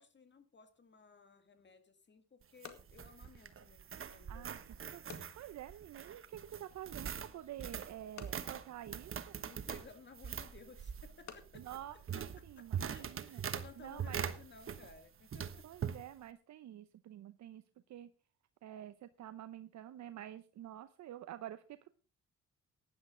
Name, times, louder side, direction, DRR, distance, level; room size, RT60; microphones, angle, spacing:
voice 1, 0.0-4.5 9.4-11.7 11.9-12.3 12.6-15.7, left 4 dB, 35° left, 8 dB, 2.1 m, -58 dB
sound 1, 1.6-13.0, left 8 dB, 65° left, 2.1 m, -59 dB
sound 2, 2.4-15.0 15.3-16.0, right 8 dB, 45° right, 1.2 m, -43 dB
voice 2, 4.3-9.4 11.6-12.0 12.4-13.4 13.8-14.2 15.6-17.6 17.9-18.1 18.6-22.0, right 12 dB, 65° right, 12 dB, 0.8 m, -49 dB
15.5 x 10.5 x 3.8 m, 0.36 s
cardioid pair, 90°, 30 cm